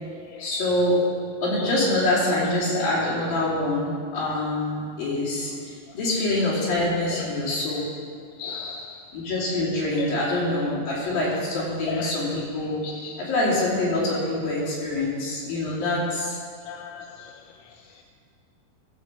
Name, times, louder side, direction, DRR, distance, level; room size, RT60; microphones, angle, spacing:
voice 1, 0.4-1.0 1.4-7.9 9.1-12.8 13.2-16.4, left 1 dB, 60° left, -7 dB, 4.8 m, -25 dB
voice 2, 8.4-9.1 10.0-10.2 11.9-12.1 12.8-13.1 16.6-17.3 17.6-17.8, left 8 dB, 85° left, 3 dB, 2.6 m, -35 dB
15.5 x 5.6 x 7.4 m, 2.2 s
omnidirectional pair, 4.7 m